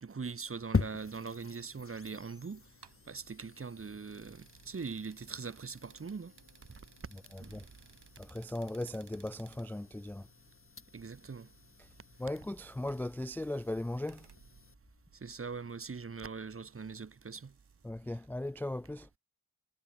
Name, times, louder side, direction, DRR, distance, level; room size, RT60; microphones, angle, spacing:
voice 1, 0.0-2.6 3.1-6.3 7.4-7.6 10.9-11.5 15.2-17.5, right 5 dB, 35° right, 0.8 m, -42 dB
sound 1, 0.6-18.3, right 7 dB, 80° right, 1.5 m, -64 dB
sound 2, 0.7-14.7, left 4 dB, 35° left, 1.0 m, -43 dB
sound 3, 5.9-8.4, left 5 dB, 75° left, 7.8 m, -72 dB
voice 2, 7.1-7.7 8.2-10.3 11.8-11.9 12.2-14.3 17.8-19.1, left 1 dB, 5° left, 0.3 m, -38 dB
wide cardioid pair, 75°, 40 cm